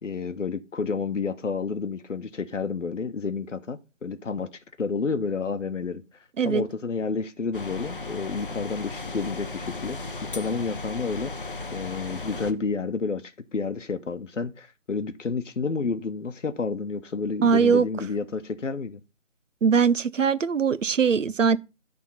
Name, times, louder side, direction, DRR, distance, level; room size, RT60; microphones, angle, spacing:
voice 1, 0.0-4.5 4.8-6.0 6.4-19.0, left 4 dB, 70° left, 0.9 m, -30 dB
sound 1, 7.5-12.5, left 3 dB, 40° left, 0.7 m, -36 dB
voice 2, 17.4-17.9 19.6-21.6, right 6 dB, 70° right, 0.7 m, -21 dB
9.8 x 3.6 x 5.6 m
figure-of-eight pair, 160°, 39 cm